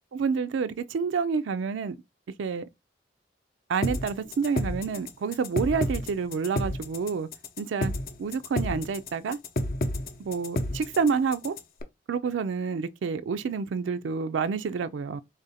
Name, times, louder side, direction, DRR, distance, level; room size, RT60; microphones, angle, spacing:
voice 1, 0.1-2.0 2.4-2.7 3.7-7.3 7.6-7.9 8.2-9.4 10.2-11.6 12.1-15.2, right 5 dB, 75° right, 0.4 m, -28 dB
sound 1, 3.8-11.8, left 1 dB, 55° left, 0.6 m, -30 dB
3.7 x 2.5 x 4.0 m
head